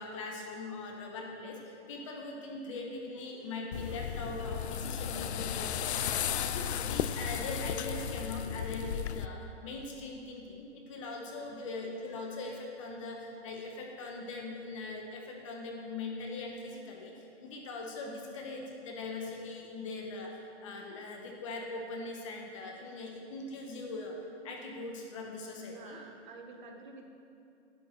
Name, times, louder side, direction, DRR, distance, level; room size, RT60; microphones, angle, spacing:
voice 1, 0.0-24.1 24.4-26.0, left 2 dB, 25° left, 1 dB, 1.2 m, -41 dB
sound 1, 3.7-9.3, left 9 dB, 65° left, 0.5 m, -34 dB
voice 2, 25.7-27.1, right 3 dB, 40° right, 3 dB, 1.2 m, -49 dB
11.0 x 7.7 x 5.9 m, 2.5 s
hypercardioid pair, 165°, 36 cm